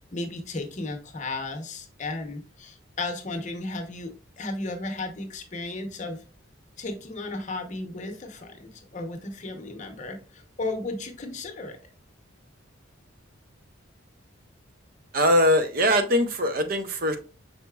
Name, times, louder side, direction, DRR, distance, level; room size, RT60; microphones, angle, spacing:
voice 1, 0.1-6.2 6.8-11.8, left 2 dB, 40° left, 0.8 m, -34 dB
voice 2, 15.1-17.2, equal, 50° right, 0.6 m, -21 dB
5.6 x 4.0 x 2.3 m
head